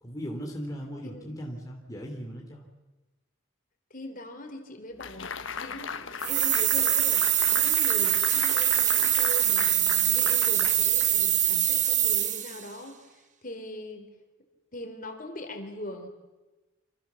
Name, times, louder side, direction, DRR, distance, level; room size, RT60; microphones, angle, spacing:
voice 1, 0.0-2.7, equal, 15° left, 0 dB, 3.2 m, -38 dB
voice 2, 1.0-1.3 3.9-7.2 7.5-14.1 14.7-16.1, left 1 dB, 40° left, 6 dB, 3.7 m, -41 dB
sound 1, 5.0-11.5, left 6 dB, 65° left, 1.2 m, -37 dB
sound 2, 6.2-12.6, right 12 dB, 35° right, 1.5 m, -24 dB
27.5 x 26.5 x 7.2 m, 1.1 s
head